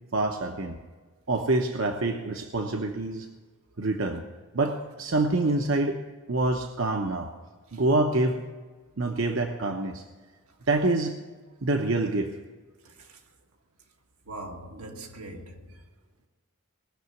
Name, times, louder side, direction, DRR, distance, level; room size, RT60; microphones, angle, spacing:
voice 1, 0.1-0.8 1.3-3.3 3.8-4.2 4.5-6.0 6.3-7.3 7.7-8.4 9.0-10.0 10.7-11.2 11.6-12.3, right 2 dB, 65° right, 0.9 m, -26 dB
voice 2, 12.9-13.2 14.3-15.8, right 2 dB, 85° right, 1.9 m, -41 dB
19.5 x 6.8 x 9.5 m
head